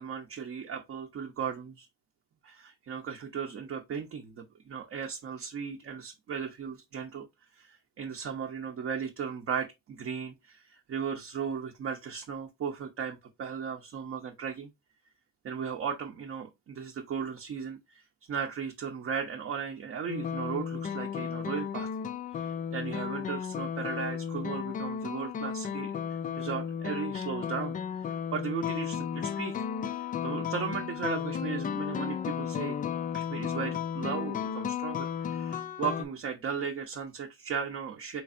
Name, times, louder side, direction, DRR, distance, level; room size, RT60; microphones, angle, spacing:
voice 1, 0.0-1.9 2.4-7.3 7.5-14.7 15.4-18.0 18.3-21.9 22.3-26.0 26.4-29.6 30.2-32.8 33.1-38.2, right 7 dB, 45° right, 0.7 m, -36 dB
sound 1, 20.1-36.1, left 8 dB, 25° left, 0.4 m, -34 dB
4.3 x 3.2 x 2.5 m
supercardioid pair, 90°, 32 cm